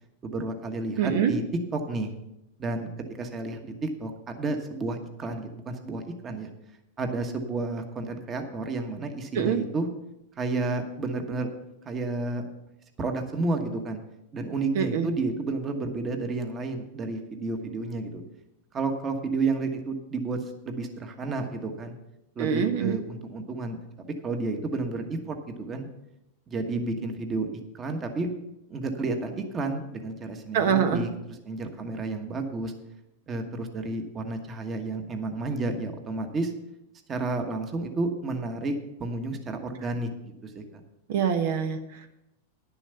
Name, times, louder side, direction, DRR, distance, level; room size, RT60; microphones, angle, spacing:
voice 1, 0.2-1.4 1.7-2.1 2.6-2.9 3.2-6.5 7.0-9.9 10.4-11.5 11.8-12.4 13.0-14.0 14.3-18.2 18.7-21.9 22.3-23.8 24.2-25.9 26.5-28.3 28.7-32.7 33.3-36.5 37.1-40.8, right 3 dB, 20° right, 5 dB, 1.3 m, -31 dB
voice 2, 1.0-1.3 9.3-9.6 14.7-15.1 22.4-23.0 30.5-31.0 41.1-42.1, right 7 dB, 65° right, 7 dB, 1.1 m, -25 dB
10.5 x 7.0 x 6.9 m, 0.89 s
supercardioid pair, 145°, 0 cm